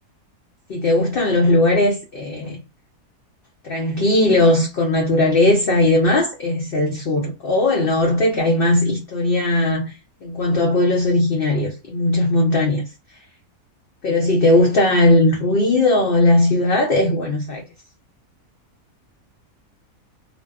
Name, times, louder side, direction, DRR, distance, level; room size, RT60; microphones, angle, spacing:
voice 1, 0.7-2.6 3.6-12.8 14.0-17.6, left 2 dB, 65° left, 0.5 m, -18 dB
2.5 x 2.2 x 2.3 m
omnidirectional pair, 1.6 m